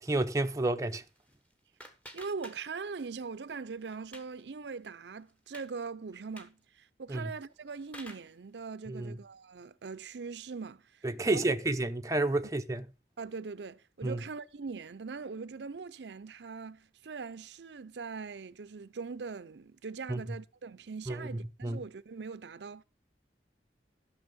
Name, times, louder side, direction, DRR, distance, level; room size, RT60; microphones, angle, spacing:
voice 1, 0.0-1.0 7.1-7.3 8.9-9.2 11.0-12.8 14.0-14.2 20.1-20.2 21.1-21.8, right 2 dB, 20° right, 0.6 m, -30 dB
sound 1, 1.0-3.0 3.3-4.4 4.8-4.9 5.3-5.7 6.2-6.6 7.4-8.4, equal, 10° left, 1.3 m, -51 dB
voice 2, 2.1-11.6 13.2-22.8, right 4 dB, 85° right, 0.6 m, -41 dB
12.5 x 6.4 x 5.2 m
head